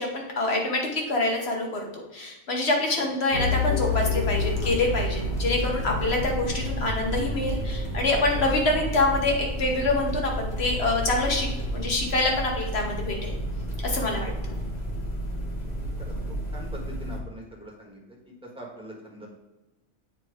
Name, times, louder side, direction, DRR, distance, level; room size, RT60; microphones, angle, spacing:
voice 1, 0.0-13.4 13.8-14.5, left 2 dB, 55° left, 0 dB, 1.6 m, -26 dB
sound 1, 3.3-17.2, left 1 dB, 35° left, 1.1 m, -30 dB
voice 2, 15.8-16.1 16.5-19.3, right 1 dB, 5° right, -3 dB, 1.5 m, -43 dB
8.3 x 3.1 x 4.9 m, 1.1 s
omnidirectional pair, 1.3 m